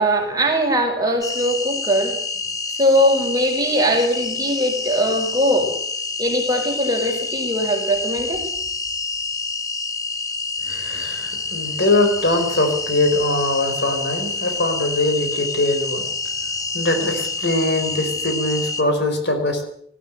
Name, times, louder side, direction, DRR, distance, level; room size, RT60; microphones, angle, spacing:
voice 1, 0.0-2.1 2.8-5.7 6.2-8.5, equal, 20° right, 1 dB, 5.4 m, -20 dB
sound 1, 1.2-18.8, left 4 dB, 15° left, 1.4 m, -27 dB
voice 2, 10.6-16.1 16.4-19.7, left 2 dB, 55° left, 5 dB, 4.5 m, -22 dB
19.5 x 14.5 x 9.0 m, 0.68 s
head